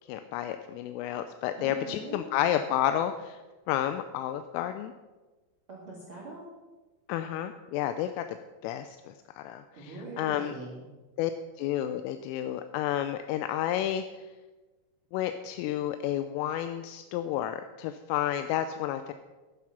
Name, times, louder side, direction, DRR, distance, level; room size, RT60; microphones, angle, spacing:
voice 1, 0.1-3.4 3.7-4.9 7.1-8.4 8.6-10.5 11.2-11.3 11.6-14.0 15.1-19.1, left 11 dB, 85° left, 9 dB, 3.1 m, -31 dB
voice 2, 1.6-2.2 5.7-6.4 9.7-10.8, right 2 dB, 40° right, -4 dB, 2.0 m, -42 dB
11.0 x 11.0 x 5.8 m, 1.2 s
omnidirectional pair, 5.8 m